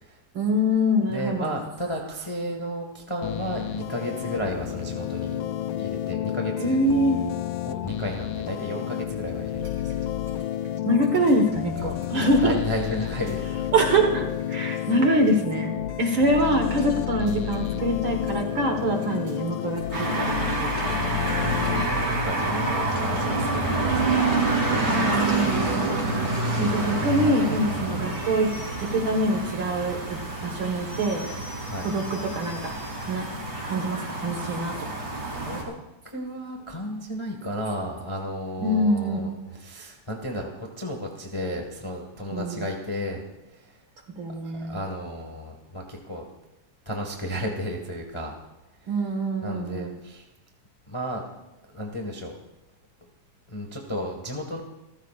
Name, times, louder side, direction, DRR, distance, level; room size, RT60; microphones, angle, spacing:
voice 1, 0.3-1.6 6.6-7.2 10.8-12.6 13.7-20.7 21.0-21.1 24.9-26.0 26.6-28.5 28.9-31.3 31.8-32.7 33.0-33.3 33.6-35.0 38.6-39.2 42.3-42.7 44.2-44.8 48.9-50.0, equal, 50° right, 3 dB, 1.8 m, -24 dB
voice 2, 1.1-5.4 5.8-6.8 7.6-10.0 12.1-13.5 21.4-24.2 31.6-31.9 35.3-35.8 36.0-39.3 39.6-43.2 43.5-43.7 44.5-46.3 46.8-48.3 49.4-50.2 50.9-51.2 51.7-52.3 53.5-54.6, equal, 30° left, 1 dB, 0.5 m, -33 dB
sound 1, 3.2-21.9, left 11 dB, 80° left, 2.0 m, -31 dB
sound 2, 9.6-22.3, left 9 dB, 75° right, 5.7 m, -36 dB
sound 3, 19.9-35.6, right 2 dB, 15° right, 3.6 m, -27 dB
28.0 x 14.5 x 2.5 m, 0.98 s
omnidirectional pair, 3.7 m